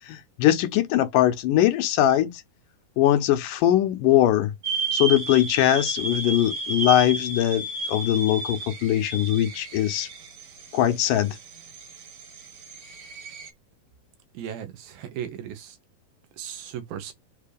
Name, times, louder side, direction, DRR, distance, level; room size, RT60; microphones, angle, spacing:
voice 1, 0.1-2.3 3.0-4.5 4.9-10.1 10.7-11.4, left 12 dB, 75° left, 2.4 m, -21 dB
sound 1, 4.6-13.5, right 3 dB, 45° right, 1.8 m, -33 dB
voice 2, 14.3-15.8 16.4-17.1, right 9 dB, 85° right, 3.2 m, -36 dB
7.5 x 2.8 x 5.1 m
omnidirectional pair, 4.1 m